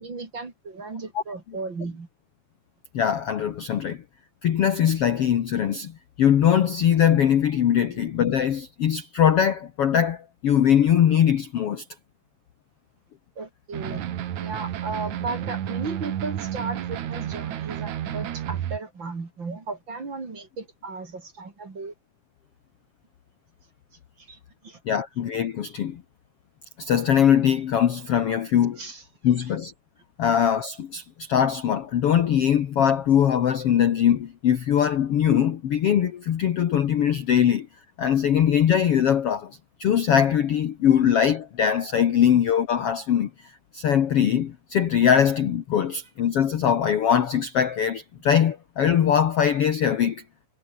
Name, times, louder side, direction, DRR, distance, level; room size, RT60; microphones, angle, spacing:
voice 1, 0.0-2.1 7.9-8.0 13.4-14.0 14.4-21.9 24.2-24.8 28.8-29.0, right 3 dB, 35° right, 3.8 m, -35 dB
voice 2, 2.9-4.0 4.4-11.8 13.9-14.0 24.9-26.0 26.8-28.8 29.2-29.7 30.2-37.7 38.0-50.2, left 9 dB, 60° left, 1.8 m, -21 dB
sound 1, 13.7-18.8, right 11 dB, 65° right, 2.6 m, -31 dB
omnidirectional pair, 4.0 m